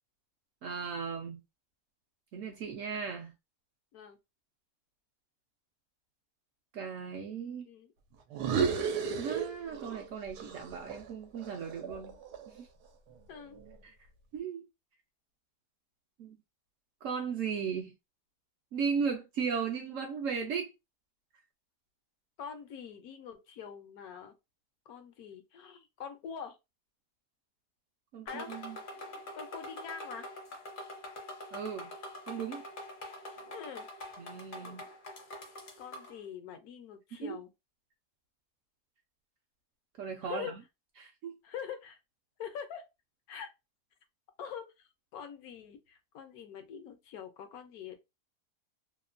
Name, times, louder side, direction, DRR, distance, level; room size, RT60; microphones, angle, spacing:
voice 1, 0.6-1.4 2.3-3.3 6.7-7.6 9.2-12.2 12.5-12.7 13.8-13.9 14.3-14.6 16.2-16.4 17.0-17.9 18.7-20.7 28.1-28.8 31.5-31.9 32.3-32.6 34.2-34.8 37.2-37.4 40.0-40.6 41.0-41.4, right 6 dB, 70° right, 0.8 m, -36 dB
sound 1, 8.3-10.1 10.4-12.6, right 6 dB, 90° right, 1.2 m, -33 dB
voice 2, 13.3-13.6 22.4-24.3 24.9-26.6 28.3-28.5 29.3-30.3 33.5-33.9 34.5-34.9 35.8-37.5 40.2-40.6 41.4-42.0 42.4-42.9 43.3-43.5 44.4-48.0, left 7 dB, 70° left, 1.0 m, -44 dB
sound 2, 28.3-36.2, left 1 dB, 50° left, 0.6 m, -45 dB
2.9 x 2.1 x 2.4 m
omnidirectional pair, 1.7 m